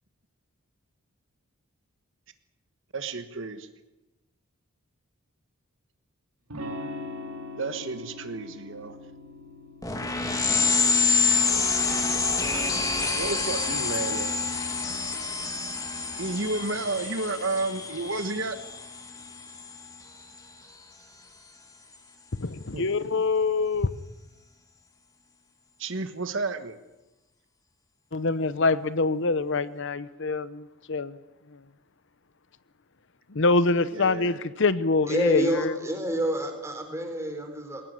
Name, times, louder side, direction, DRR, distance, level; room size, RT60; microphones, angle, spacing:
voice 1, 2.9-3.7 7.6-9.0 12.5-12.6 13.2-14.3 16.2-18.6 22.7-22.9 25.8-26.8 33.9-34.4, right 3 dB, 55° right, 10 dB, 1.3 m, -31 dB
Electric guitar / Strum, 6.5-12.2, left 2 dB, 90° right, 4.4 m, -41 dB
sound 1, 9.8-20.0, left 4 dB, 15° left, 2.2 m, -27 dB
voice 2, 22.4-23.9 28.1-30.6 30.9-31.1 33.3-35.7, left 3 dB, 55° left, 15 dB, 0.8 m, -25 dB
voice 3, 35.1-37.8, right 1 dB, 15° right, 5 dB, 4.0 m, -28 dB
21.5 x 17.5 x 9.3 m, 1.0 s
head